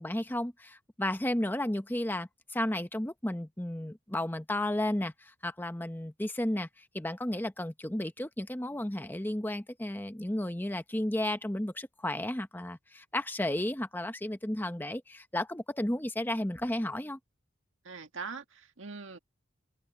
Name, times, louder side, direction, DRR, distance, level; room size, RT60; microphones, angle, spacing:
voice 1, 0.0-6.7 6.9-17.2, left 1 dB, 10° left, 0.9 m, -33 dB
voice 2, 17.8-19.2, right 4 dB, 80° right, 1.7 m, -42 dB
open air
head